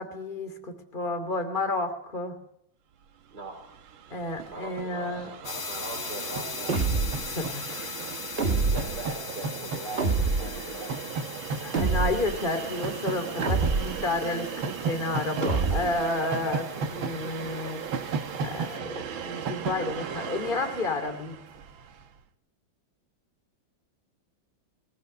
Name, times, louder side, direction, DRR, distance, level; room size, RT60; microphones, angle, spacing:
voice 1, 0.0-2.4 4.1-5.3 7.3-8.0 11.6-17.8 18.4-21.4, left 2 dB, 25° left, 7 dB, 2.8 m, -31 dB
voice 2, 3.3-3.7 4.5-6.8 8.5-11.8, right 2 dB, 55° right, -1 dB, 4.7 m, -41 dB
Train, 3.4-3.5 3.6-22.1, right 6 dB, 90° right, 2.0 m, -35 dB
sound 1, 5.4-18.8, left 4 dB, 50° left, 2.4 m, -41 dB
sound 2, 6.7-7.3 8.4-9.1 10.0-10.6 11.7-12.4 13.4-14.1 15.4-16.1, right 4 dB, 35° right, 1.4 m, -26 dB
22.0 x 18.5 x 9.4 m, 0.77 s
omnidirectional pair, 2.1 m